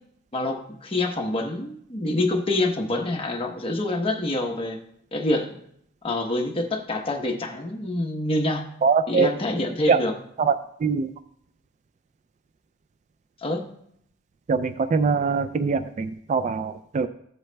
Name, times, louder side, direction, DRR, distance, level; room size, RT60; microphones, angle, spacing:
voice 1, 0.3-4.8 5.1-5.6 6.0-8.6 9.1-10.1 13.4-13.7, left 2 dB, 30° left, 3 dB, 1.0 m, -26 dB
voice 2, 8.8-9.3 9.9-10.0 10.4-11.1 14.5-17.1, right 5 dB, 35° right, 10 dB, 0.3 m, -23 dB
15.0 x 7.8 x 2.2 m, 0.71 s
head